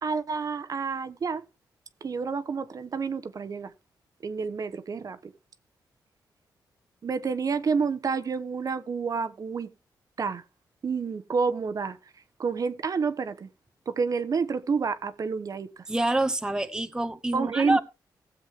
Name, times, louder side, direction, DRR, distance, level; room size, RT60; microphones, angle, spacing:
voice 1, 0.0-1.4 2.0-3.7 4.2-5.3 7.0-9.7 10.2-10.4 10.8-12.0 12.4-13.5 13.9-15.8 17.3-17.8, right 5 dB, 50° right, 0.9 m, -29 dB
voice 2, 15.9-17.8, right 1 dB, 10° right, 0.8 m, -27 dB
16.0 x 7.4 x 3.5 m
cardioid pair, 80°, 8 cm